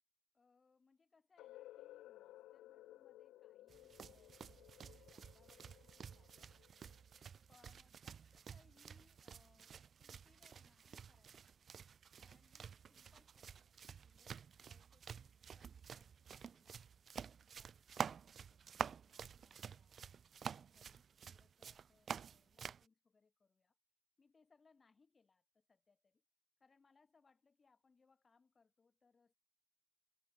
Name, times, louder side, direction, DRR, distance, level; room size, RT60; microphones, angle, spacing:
voice 1, 0.3-11.8 12.2-13.8 14.0-17.1 17.5-20.0 20.4-23.8 24.2-26.2 26.6-29.3, left 4 dB, 30° left, 5.5 m, -75 dB
sound 1, 1.4-7.2, left 15 dB, 90° left, 1.2 m, -59 dB
sound 2, 3.7-22.8, right 7 dB, 50° right, 0.4 m, -50 dB
cardioid pair, 90°, 0 cm